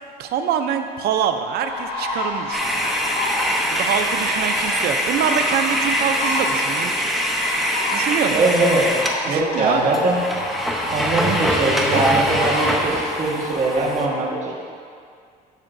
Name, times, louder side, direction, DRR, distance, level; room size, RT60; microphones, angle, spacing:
voice 1, 0.2-3.0 3.7-7.1 7.9-8.4 9.2-10.0, right 8 dB, 70° right, 7 dB, 0.6 m, -25 dB
sound 1, 1.6-14.1, left 2 dB, 90° left, 1.5 m, -30 dB
sound 2, 2.5-9.2 9.6-9.7 9.9-14.1, equal, ahead, 0.8 m, -24 dB
voice 2, 8.3-8.9 9.2-10.2 10.8-14.6, right 2 dB, 45° right, -3 dB, 1.6 m, -21 dB
12.5 x 5.7 x 2.6 m, 2.2 s
cardioid pair, 110°, 17 cm